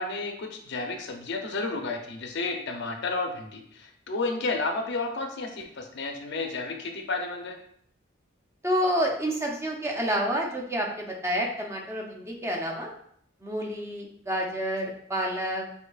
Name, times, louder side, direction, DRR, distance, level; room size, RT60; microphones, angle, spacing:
voice 1, 0.0-7.6, left 3 dB, 55° left, 4 dB, 0.6 m, -32 dB
voice 2, 8.6-12.9 13.4-15.6, equal, 15° right, -1 dB, 0.6 m, -29 dB
6.5 x 2.8 x 2.3 m, 0.66 s
head